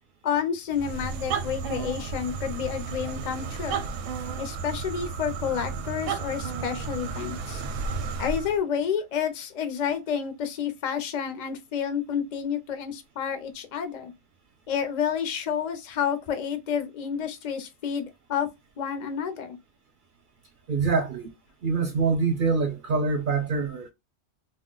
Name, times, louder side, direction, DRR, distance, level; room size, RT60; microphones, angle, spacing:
voice 1, 0.2-3.8 4.4-7.6 8.2-14.1 14.7-18.5 18.8-19.6, left 8 dB, 50° left, 0.5 m, -30 dB
sound 1, 0.7-8.6, right 5 dB, 85° right, 0.9 m, -33 dB
voice 2, 20.7-21.3 21.6-23.9, right 4 dB, 55° right, 0.6 m, -25 dB
2.4 x 2.1 x 3.7 m
omnidirectional pair, 1.3 m